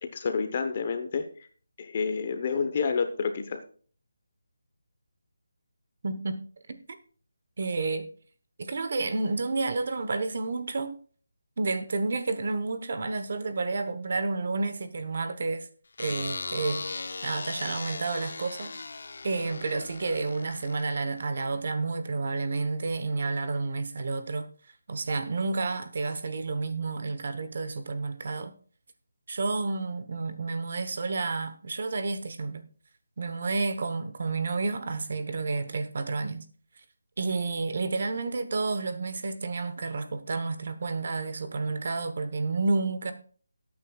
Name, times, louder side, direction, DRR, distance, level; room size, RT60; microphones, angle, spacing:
voice 1, 0.1-1.3 1.8-3.6, left 5 dB, 25° left, 0.9 m, -29 dB
voice 2, 6.0-6.8 7.6-8.1 8.6-11.0 11.6-15.7 16.0-16.8 17.2-18.7 19.2-24.5 24.9-28.5 29.3-32.6 33.2-36.5 37.2-43.1, right 3 dB, 40° right, 1.0 m, -30 dB
sound 1, 16.0-21.3, left 3 dB, 55° left, 0.8 m, -38 dB
18.0 x 8.8 x 2.4 m
figure-of-eight pair, 175°, 0 cm